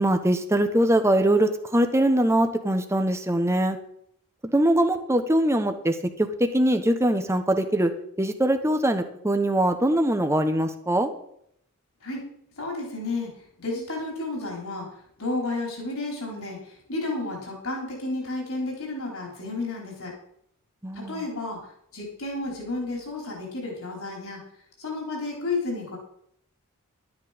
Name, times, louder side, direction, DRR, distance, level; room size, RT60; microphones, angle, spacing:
voice 1, 0.0-3.8 4.5-7.9 8.2-11.1 20.8-21.2, right 1 dB, 15° right, 7 dB, 1.1 m, -22 dB
voice 2, 12.6-13.3 13.6-14.9 15.2-16.6 16.9-20.1 20.9-21.6 21.9-24.4 24.8-26.0, left 2 dB, 70° left, -1 dB, 4.4 m, -31 dB
12.5 x 9.7 x 5.2 m, 0.71 s
head